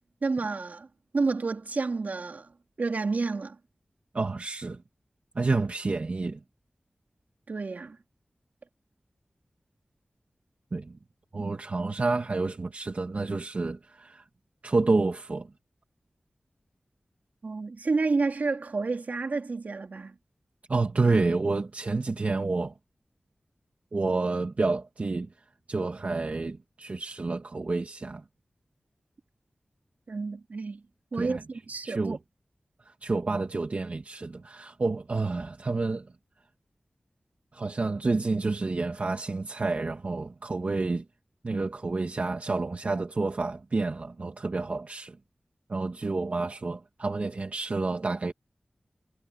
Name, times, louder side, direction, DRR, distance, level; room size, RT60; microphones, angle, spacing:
voice 1, 0.2-0.9 1.1-2.5 2.8-3.6 7.5-8.0 17.4-20.2 30.1-30.8 31.1-32.2, right 4 dB, 70° right, 4.1 m, -30 dB
voice 2, 4.1-4.8 5.4-6.4 10.7-10.9 11.3-14.2 14.6-15.5 20.7-22.7 23.9-25.3 25.7-28.2 31.1-31.4 31.8-32.2 33.0-36.1 37.5-41.0 41.4-45.2 45.7-48.3, right 3 dB, 55° right, 2.0 m, -29 dB
wide cardioid pair, 85°, 3 cm